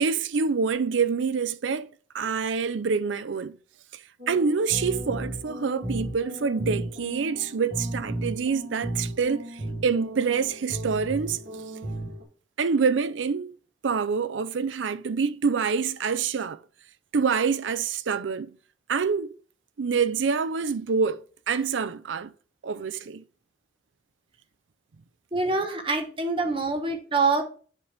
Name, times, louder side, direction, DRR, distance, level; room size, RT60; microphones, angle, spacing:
voice 1, 0.0-1.9 2.1-3.6 4.3-11.4 12.6-13.5 13.8-16.6 17.1-18.5 18.9-19.3 19.8-22.3 22.6-23.2, right 5 dB, 85° right, 0.5 m, -26 dB
sound 1, 4.2-12.2, right 1 dB, 55° right, 1.7 m, -35 dB
voice 2, 25.3-27.4, right 3 dB, 25° right, 0.9 m, -25 dB
7.3 x 3.4 x 5.3 m
head